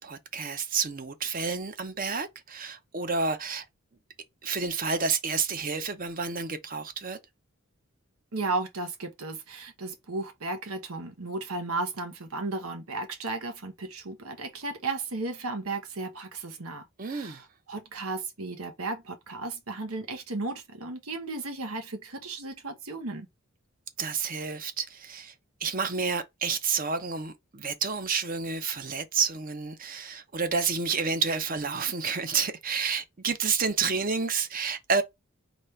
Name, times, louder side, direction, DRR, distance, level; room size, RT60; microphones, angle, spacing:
voice 1, 0.0-3.6 4.4-7.2 17.0-17.4 24.0-25.3 25.6-35.0, right 5 dB, 40° right, 0.7 m, -29 dB
voice 2, 8.3-23.3, right 3 dB, 85° right, 1.2 m, -35 dB
4.2 x 3.3 x 3.2 m
head